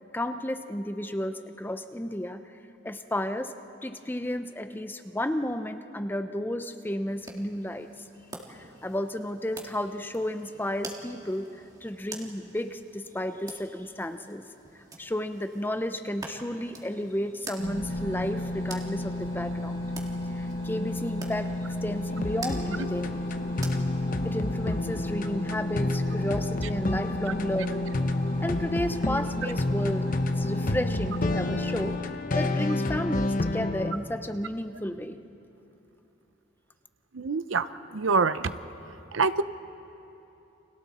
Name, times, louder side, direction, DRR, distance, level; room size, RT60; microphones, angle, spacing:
voice 1, 0.1-2.4 2.8-3.5 3.8-7.9 8.5-14.4 15.0-19.8 20.3-23.2 24.2-27.8 28.4-30.1 30.4-32.0 32.3-35.2, left 1 dB, 10° left, 9 dB, 0.6 m, -32 dB
sound 1, 7.1-24.4, right 3 dB, 20° right, 1.8 m, -47 dB
sound 2, 17.6-31.9, left 1 dB, 85° left, 7.2 m, -33 dB
sound 3, 22.1-33.9, left 2 dB, 45° left, 0.9 m, -30 dB
voice 2, 37.1-38.5 39.1-39.4, right 4 dB, 80° right, 13 dB, 0.7 m, -26 dB
30.0 x 26.0 x 4.3 m, 2.9 s
head